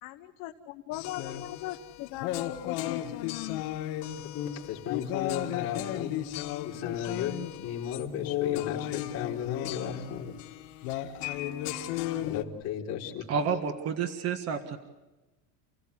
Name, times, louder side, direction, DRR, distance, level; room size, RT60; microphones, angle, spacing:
voice 1, 0.0-3.6, left 14 dB, 60° left, 5 dB, 1.3 m, -39 dB
sound 1, 0.9-12.4, left 13 dB, 85° left, 2.0 m, -35 dB
voice 2, 4.2-6.2 6.6-10.4 10.9-11.2 12.2-13.2, left 9 dB, 40° left, -3 dB, 4.3 m, -35 dB
voice 3, 13.3-14.8, right 6 dB, 40° right, 7 dB, 1.7 m, -30 dB
29.5 x 17.0 x 8.4 m, 1.1 s
cardioid pair, 170°, 39 cm